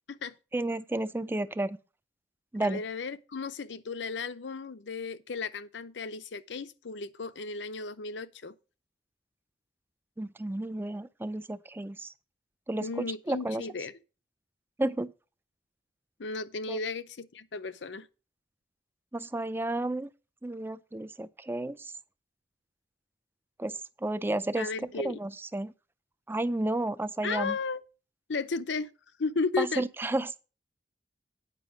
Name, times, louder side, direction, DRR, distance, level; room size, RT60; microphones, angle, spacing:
voice 1, 0.5-1.8 2.5-2.8 10.2-12.1 12.7-13.6 14.8-15.1 16.7-16.8 19.1-20.1 20.4-21.9 23.6-24.7 25.0-25.7 26.3-27.6 29.6-30.4, right 2 dB, 10° right, 0.4 m, -32 dB
voice 2, 2.6-8.5 12.8-13.9 16.2-18.1 24.6-25.2 27.2-27.8 28.3-28.9 29.2-29.8, left 4 dB, 80° left, 0.6 m, -34 dB
9.1 x 5.7 x 5.2 m
head